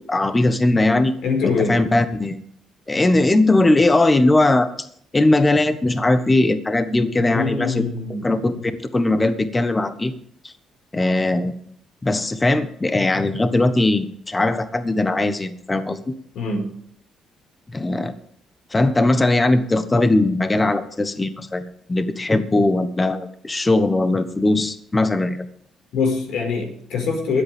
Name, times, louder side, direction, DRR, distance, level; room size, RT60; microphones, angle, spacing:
voice 1, 0.1-1.2 1.4-2.4 2.9-4.7 5.1-7.8 8.2-8.5 8.9-10.1 10.4-10.5 10.9-11.5 12.0-16.0 17.7-18.1 18.7-25.5, left 2 dB, 20° left, 10 dB, 1.2 m, -19 dB
voice 2, 1.2-1.8 7.2-8.6 16.4-16.7 25.9-27.4, left 4 dB, 75° left, 2 dB, 5.2 m, -24 dB
23.0 x 8.4 x 3.6 m, 0.65 s
cardioid pair, 85°, 0 cm